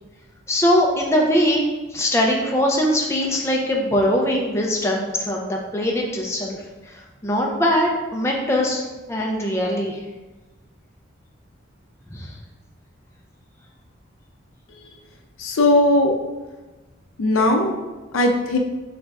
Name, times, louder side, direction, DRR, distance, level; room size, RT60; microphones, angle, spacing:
voice 1, 0.5-1.6 1.9-6.6 6.9-7.0 7.2-10.0 12.1-12.3, equal, 15° left, -1 dB, 0.5 m, -21 dB
voice 2, 15.4-16.1 17.2-17.8 18.1-18.6, left 1 dB, 85° left, 3 dB, 0.5 m, -18 dB
4.0 x 2.5 x 3.3 m, 1.2 s
head